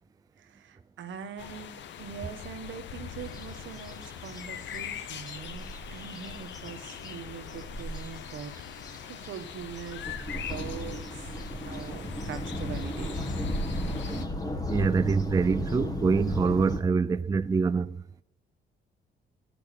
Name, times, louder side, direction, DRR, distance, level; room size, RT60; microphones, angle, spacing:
voice 1, 0.4-5.7 5.9-8.5 9.1-10.0 10.4-11.3 11.6-14.3, right 7 dB, 70° right, 1.2 m, -42 dB
sound 1, 1.4-14.3, left 9 dB, 65° left, 0.8 m, -42 dB
sound 2, 3.2-16.8, left 1 dB, 20° left, 1.4 m, -36 dB
voice 2, 14.7-18.0, right 4 dB, 20° right, 0.4 m, -25 dB
11.5 x 6.2 x 6.5 m
cardioid pair, 90°, 20 cm